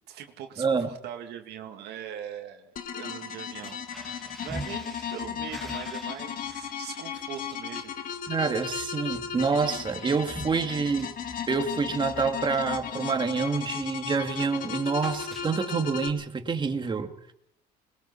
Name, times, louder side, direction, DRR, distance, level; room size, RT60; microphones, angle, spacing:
voice 1, 0.1-3.8 4.1-7.9, right 9 dB, 75° right, 4 dB, 2.1 m, -41 dB
voice 2, 0.6-1.0 8.3-11.1 11.5-17.1, right 5 dB, 25° right, 6 dB, 2.2 m, -27 dB
sound 1, 2.8-16.1, left 8 dB, 55° left, 2.0 m, -36 dB
sound 2, 3.5-13.4 13.8-14.1 14.3-15.9, right 1 dB, ahead, 1.9 m, -45 dB
21.5 x 21.0 x 5.7 m, 0.73 s
cardioid pair, 110°, 17 cm